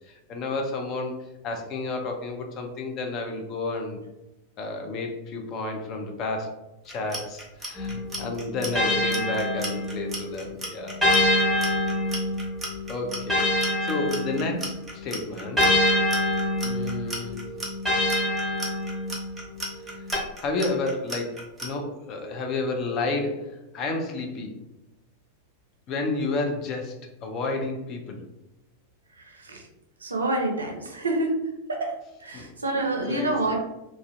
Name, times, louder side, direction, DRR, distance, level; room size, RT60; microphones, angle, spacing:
voice 1, 0.1-1.2 1.4-4.0 4.6-6.5 6.8-11.0 12.9-15.7 16.6-17.4 20.4-23.5 23.7-24.6 25.9-27.0 27.2-28.2 32.3-32.5 33.0-33.6, left 3 dB, 35° left, 3 dB, 0.4 m, -31 dB
Clock, 6.8-21.7, right 1 dB, 10° right, 0.7 m, -35 dB
sound 1, 7.8-10.2 11.0-14.8 15.6-19.3 20.1-20.2, left 1 dB, 5° left, 1.1 m, -25 dB
voice 2, 30.0-31.3 31.7-31.9 32.2-33.6, right 2 dB, 75° right, 2 dB, 0.4 m, -27 dB
2.4 x 2.0 x 2.5 m, 0.96 s
figure-of-eight pair, 90°, 0 cm